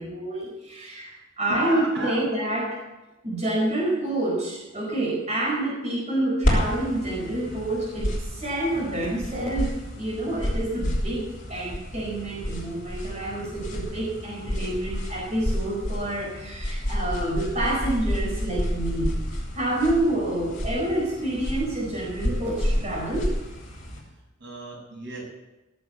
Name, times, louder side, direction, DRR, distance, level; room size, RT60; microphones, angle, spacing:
voice 1, 0.0-2.8 3.2-11.2 11.5-23.3, right 1 dB, 35° right, -4 dB, 4.8 m, -28 dB
voice 2, 0.6-1.0 1.5-2.3 24.4-25.2, right 1 dB, 65° right, -3 dB, 7.5 m, -34 dB
sound 1, 6.4-24.0, equal, 45° left, 6.3 m, -30 dB
17.5 x 8.5 x 8.3 m, 1.0 s
head